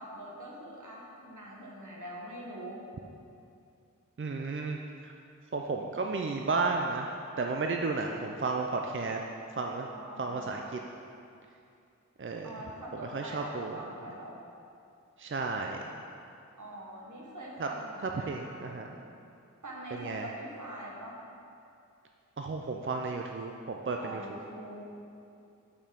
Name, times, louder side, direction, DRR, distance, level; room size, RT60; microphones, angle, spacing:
voice 1, 0.0-2.8 9.9-10.8 12.4-14.4 16.6-19.0 19.6-21.1 24.0-24.9, right 1 dB, 70° right, -3 dB, 1.5 m, -44 dB
voice 2, 4.2-5.1 5.5-9.2 9.6-9.9 10.2-10.8 12.2-12.5 13.1-13.8 15.2-15.8 17.6-17.7 18.0-18.9 20.0-20.2 22.4-24.4, right 3 dB, 40° right, 2 dB, 0.5 m, -33 dB
6.6 x 5.9 x 5.3 m, 2.6 s
wide cardioid pair, 50°, 31 cm